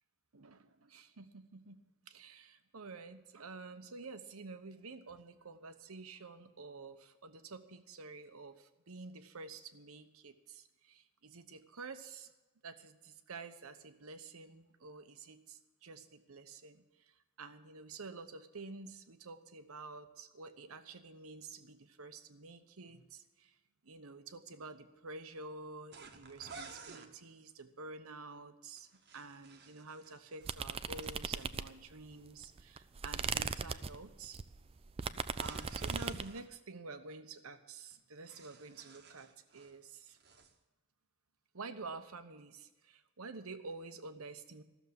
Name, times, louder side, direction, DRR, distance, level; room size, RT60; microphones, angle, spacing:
voice 1, 0.3-12.3 12.6-23.6 23.8-28.9 29.1-34.4 35.4-40.2 41.5-44.6, right 3 dB, 75° right, 10 dB, 1.0 m, -49 dB
sound 1, 25.9-27.1 28.8-31.2 35.2-36.5 37.9-39.8 40.1-40.5, right 5 dB, 50° right, 1.1 m, -54 dB
sound 2, 30.4-32.0 32.4-36.3, right 5 dB, 25° right, 0.4 m, -38 dB
14.0 x 7.1 x 9.4 m, 1.1 s
head